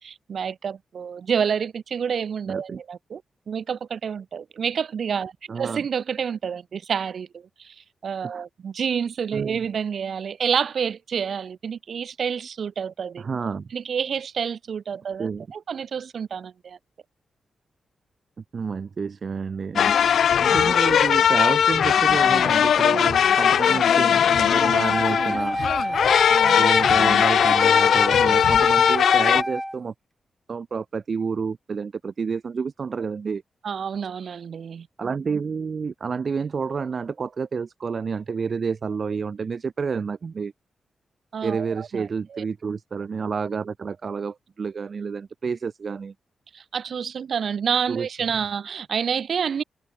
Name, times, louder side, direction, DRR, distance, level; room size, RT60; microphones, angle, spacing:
voice 1, 0.0-3.2 3.5-13.3 13.7-16.8 20.0-20.2 26.3-26.6 33.6-34.9 41.3-42.4 46.5-49.6, right 7 dB, 55° right, 5.6 m, -29 dB
voice 2, 2.5-2.8 5.5-5.9 8.2-8.4 9.3-9.6 13.2-13.7 15.2-15.5 18.5-19.9 20.4-25.6 26.6-29.9 30.5-33.4 35.0-40.5 41.4-46.1 47.9-48.1, right 5 dB, 40° right, 2.3 m, -29 dB
sound 1, 19.8-29.4, left 8 dB, 75° left, 0.4 m, -19 dB
Wind instrument woodwind instrument, 24.9-29.8, equal, ahead, 4.6 m, -28 dB
wide cardioid pair, 160°, 0 cm